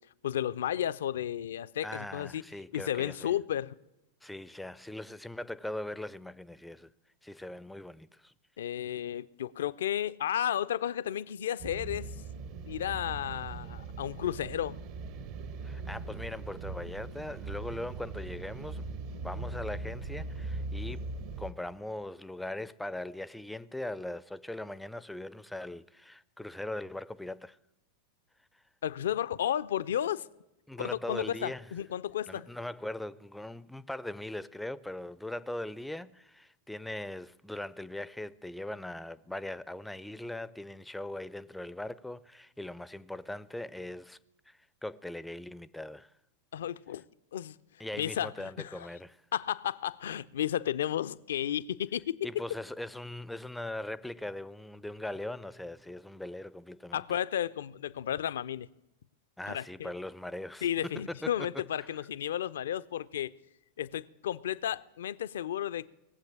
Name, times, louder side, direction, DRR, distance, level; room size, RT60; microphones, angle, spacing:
voice 1, 0.2-2.4 2.7-3.7 8.6-12.1 12.7-14.8 28.8-30.3 30.8-32.5 46.5-47.0 47.3-47.6 48.0-48.9 49.3-52.2 56.9-58.7 59.5-59.9 60.6-63.3 63.8-65.9, left 10 dB, 60° left, 0.4 m, -33 dB
voice 2, 1.8-3.3 4.2-6.9 7.2-8.3 15.6-27.6 30.7-31.7 32.3-44.2 44.5-46.1 47.8-49.2 52.2-57.2 59.4-61.3 61.8-61.9, left 1 dB, 5° left, 0.4 m, -40 dB
sound 1, 11.6-21.5, right 3 dB, 45° right, 0.8 m, -40 dB
19.0 x 7.8 x 8.8 m
figure-of-eight pair, 90°, 0 cm